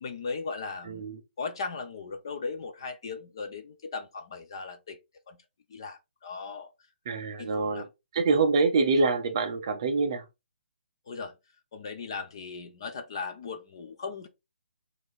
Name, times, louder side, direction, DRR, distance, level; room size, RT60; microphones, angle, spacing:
voice 1, 0.0-1.0 1.4-5.0 5.3-5.4 5.7-6.7 7.4-7.9 11.1-11.3 11.7-14.3, left 4 dB, 25° left, 0.3 m, -37 dB
voice 2, 0.9-1.2 7.1-7.9 8.1-10.2, right 4 dB, 25° right, 0.5 m, -25 dB
4.9 x 2.5 x 3.8 m
hypercardioid pair, 175°, 6 cm